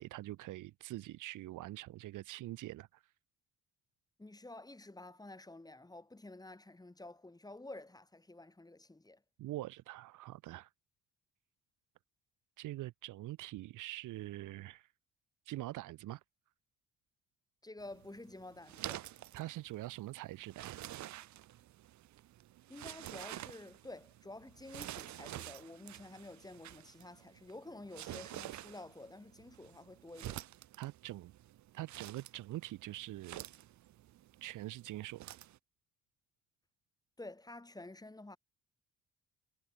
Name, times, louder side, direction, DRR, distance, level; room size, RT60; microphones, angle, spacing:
voice 1, 0.0-3.0 9.4-10.7 12.6-14.9 15.4-16.2 19.3-20.8 30.8-31.3 31.7-33.4 34.4-35.4, right 16 dB, 85° right, 1.5 m, -44 dB
voice 2, 4.2-9.2 17.6-19.1 22.7-30.4 37.2-38.4, left 2 dB, 10° left, 2.6 m, -50 dB
sound 1, 17.8-35.6, right 14 dB, 70° right, 0.9 m, -49 dB
cardioid pair, 90°, 30 cm